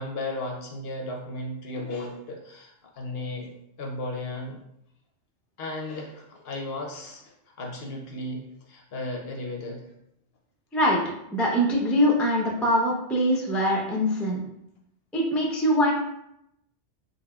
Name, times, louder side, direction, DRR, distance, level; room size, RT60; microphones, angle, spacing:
voice 1, 0.0-3.5 3.8-4.6 5.6-9.9, left 2 dB, 60° left, 1 dB, 0.7 m, -35 dB
voice 2, 11.3-14.4 15.1-15.9, equal, ahead, -2 dB, 0.3 m, -23 dB
3.8 x 3.5 x 2.2 m, 0.79 s
omnidirectional pair, 1.3 m